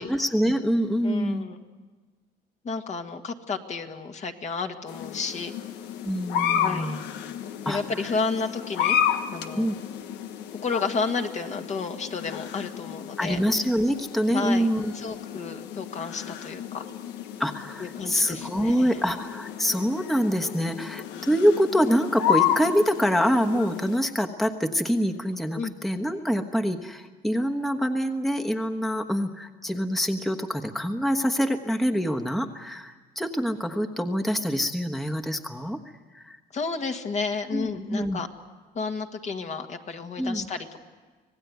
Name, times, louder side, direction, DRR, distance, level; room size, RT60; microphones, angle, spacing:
voice 1, 0.0-1.5 6.0-7.0 7.6-7.8 9.5-9.8 13.2-14.9 17.4-35.8 36.1-36.4 37.5-38.2 40.2-40.5, equal, ahead, 4 dB, 1.2 m, -25 dB
voice 2, 1.0-1.6 2.6-5.5 6.6-7.0 7.7-9.0 9.3-9.7 10.6-13.4 14.3-14.7 14.9-16.8 17.8-19.0 25.5-25.7 36.5-38.3 38.8-40.8, left 4 dB, 45° left, 4 dB, 1.8 m, -31 dB
sound 1, 4.9-24.0, left 9 dB, 90° left, 1.3 m, -32 dB
26.0 x 18.0 x 9.3 m, 1.4 s
cardioid pair, 110°, 17 cm